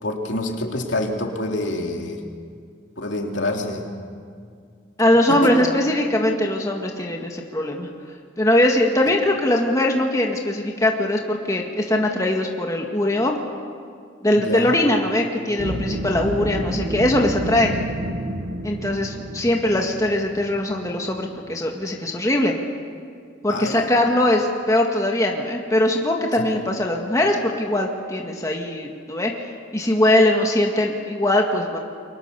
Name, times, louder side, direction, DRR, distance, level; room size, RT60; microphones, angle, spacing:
voice 1, 0.0-2.2 3.0-3.9 5.3-5.5 14.3-14.7 16.2-16.3 23.5-23.8, left 2 dB, 75° left, 1 dB, 3.2 m, -26 dB
voice 2, 5.0-7.9 8.4-13.4 14.2-17.7 18.6-22.5 23.4-29.3 29.7-31.8, left 1 dB, 20° left, 1 dB, 1.9 m, -21 dB
sound 1, 15.6-21.8, right 1 dB, 70° right, 1.6 m, -30 dB
29.5 x 24.0 x 6.9 m, 2.1 s
head